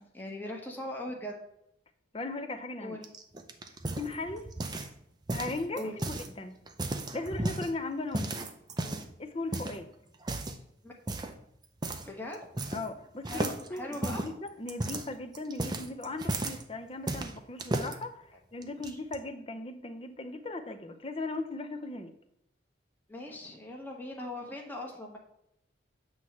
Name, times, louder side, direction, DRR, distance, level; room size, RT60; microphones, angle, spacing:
voice 1, 0.1-1.3 2.8-3.1 5.7-6.0 8.8-9.0 10.8-10.9 12.0-12.4 13.2-14.2 18.8-19.0 23.1-25.2, left 1 dB, 10° left, 0 dB, 1.1 m, -40 dB
voice 2, 2.1-3.0 4.0-4.5 5.3-5.8 6.4-6.6 7.1-8.3 9.2-9.9 12.7-18.2 18.5-22.1, left 2 dB, 30° left, 8 dB, 0.6 m, -37 dB
sound 1, 3.0-5.0 5.3-6.3 6.7-7.7 8.1-9.1 9.5-9.8 10.2-10.6 11.1-11.4 11.8-12.1 12.3-13.0 13.2-16.6 17.1-17.9 18.6-19.2, right 2 dB, 20° right, 0.5 m, -34 dB
8.0 x 3.1 x 5.8 m, 0.78 s
head